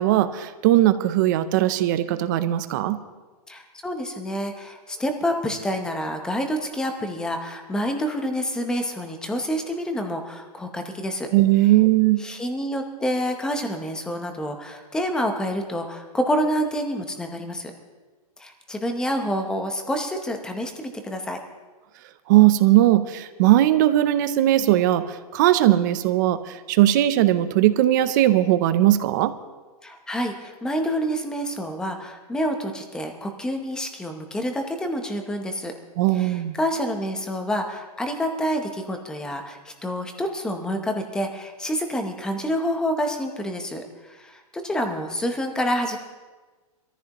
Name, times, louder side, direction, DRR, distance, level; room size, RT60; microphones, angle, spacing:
voice 1, 0.0-3.0 11.3-12.2 22.3-25.1 25.3-26.4 26.7-29.3 36.0-36.6, right 14 dB, 30° right, 12 dB, 0.6 m, -19 dB
voice 2, 3.5-11.3 12.2-17.7 18.4-21.4 29.8-35.7 36.1-46.0, equal, 5° left, 5 dB, 0.8 m, -28 dB
23.0 x 14.0 x 3.0 m, 1.3 s
supercardioid pair, 170°, 19 cm